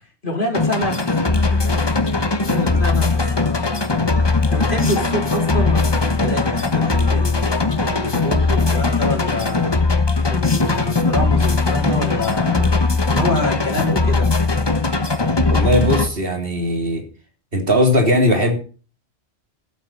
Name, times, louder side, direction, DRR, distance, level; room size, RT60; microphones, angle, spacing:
voice 1, 0.2-1.1 1.5-1.8 2.4-7.4 7.8-9.8 10.3-12.6 13.1-14.3, left 1 dB, 45° left, 2 dB, 4.1 m, -27 dB
sound 1, 0.5-16.1, left 3 dB, 25° left, 1.0 m, -19 dB
voice 2, 15.5-17.0 17.5-18.6, equal, 55° right, 3 dB, 3.4 m, -18 dB
12.0 x 7.6 x 8.9 m, 0.38 s
omnidirectional pair, 1.2 m